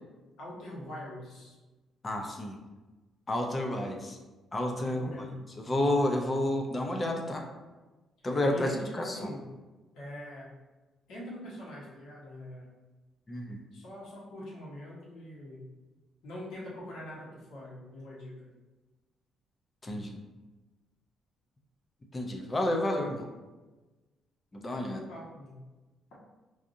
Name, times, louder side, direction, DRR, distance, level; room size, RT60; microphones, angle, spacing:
voice 1, 0.4-1.5 4.8-5.4 8.5-9.5 9.9-10.6 11.1-12.7 13.7-15.7 16.2-18.5 24.8-25.6, left 1 dB, 90° left, -6 dB, 1.3 m, -43 dB
voice 2, 2.0-2.6 3.3-4.2 4.5-5.3 5.6-7.4 8.2-8.7 8.9-9.3 13.3-13.7 19.8-20.2 22.1-23.3 24.5-25.0, left 1 dB, 20° left, 2 dB, 0.4 m, -30 dB
4.7 x 2.5 x 2.6 m, 1.2 s
cardioid pair, 175°, 0 cm